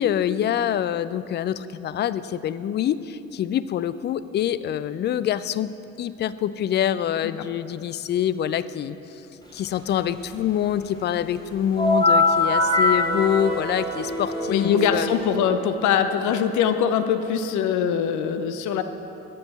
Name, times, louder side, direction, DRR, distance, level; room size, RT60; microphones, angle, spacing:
voice 1, 0.0-5.7 6.0-9.0 9.5-15.1, left 10 dB, 30° left, 15 dB, 0.4 m, -25 dB
sound 1, 11.8-15.4, left 2 dB, 10° left, 2.7 m, -22 dB
voice 2, 14.5-18.8, left 7 dB, 50° left, 9 dB, 0.7 m, -22 dB
13.5 x 9.8 x 4.1 m, 2.9 s
figure-of-eight pair, 50°, 40 cm